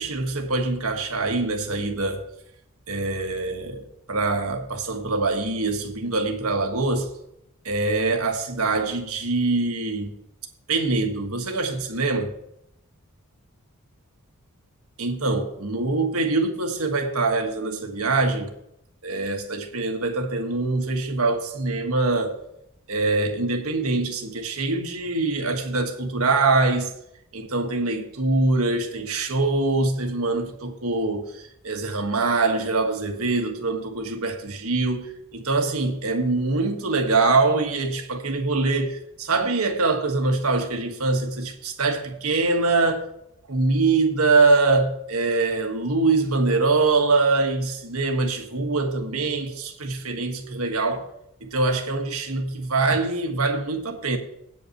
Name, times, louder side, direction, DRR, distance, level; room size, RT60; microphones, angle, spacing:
voice 1, 0.0-2.2 2.9-7.1 7.6-10.1 10.7-12.3 15.0-18.5 19.0-22.4 22.9-26.9 27.3-43.1 43.5-51.1 51.4-54.2, right 3 dB, 75° right, 1.4 m, -24 dB
8.8 x 5.6 x 7.7 m
head